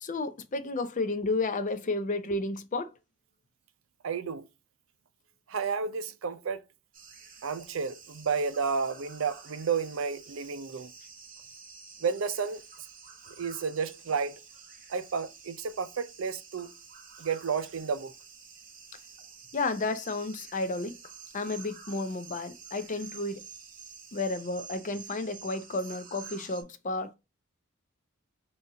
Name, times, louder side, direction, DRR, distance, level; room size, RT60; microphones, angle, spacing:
voice 1, 0.0-2.9 19.5-21.0 21.3-23.4 24.1-27.2, left 3 dB, 40° left, 0.5 m, -32 dB
voice 2, 4.0-4.5 5.5-6.6 7.4-10.9 12.0-12.6 13.4-14.4 14.9-16.7 17.2-18.1, right 5 dB, 75° right, 0.5 m, -31 dB
sound 1, 6.9-26.6, right 6 dB, 40° right, 0.9 m, -49 dB
4.0 x 2.5 x 3.8 m
head